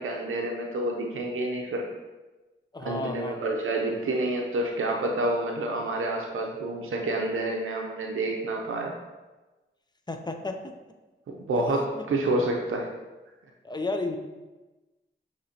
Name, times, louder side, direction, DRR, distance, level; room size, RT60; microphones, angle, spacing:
voice 1, 0.0-1.9 2.8-8.9 11.4-12.9, right 2 dB, 80° right, 0 dB, 0.5 m, -28 dB
voice 2, 2.7-3.4 10.1-10.7 11.6-11.7 12.0-12.1 13.6-14.2, left 2 dB, 20° left, 5 dB, 0.5 m, -32 dB
6.3 x 2.9 x 2.8 m, 1.2 s
cardioid pair, 55°, 21 cm